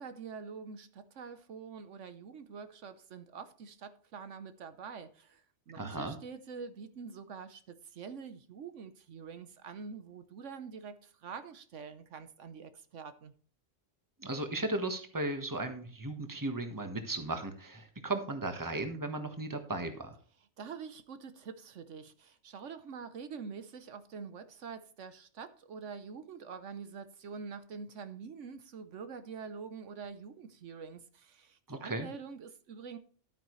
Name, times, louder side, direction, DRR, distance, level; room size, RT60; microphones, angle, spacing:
voice 1, 0.0-13.3 20.6-33.0, right 5 dB, 75° right, 1.2 m, -46 dB
voice 2, 5.8-6.2 14.2-20.2 31.7-32.1, right 2 dB, 15° right, 1.4 m, -36 dB
11.5 x 9.1 x 3.2 m
omnidirectional pair, 1.3 m